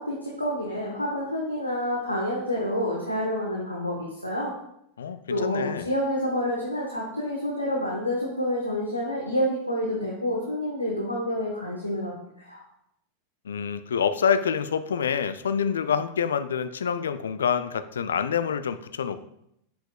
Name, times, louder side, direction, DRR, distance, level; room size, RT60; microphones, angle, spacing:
voice 1, 0.0-4.5 5.3-12.6, equal, 85° left, -3 dB, 1.1 m, -28 dB
voice 2, 5.0-5.9 13.5-19.2, left 7 dB, 65° left, 12 dB, 0.4 m, -27 dB
7.6 x 7.0 x 2.3 m, 0.77 s
figure-of-eight pair, 90°, 0 cm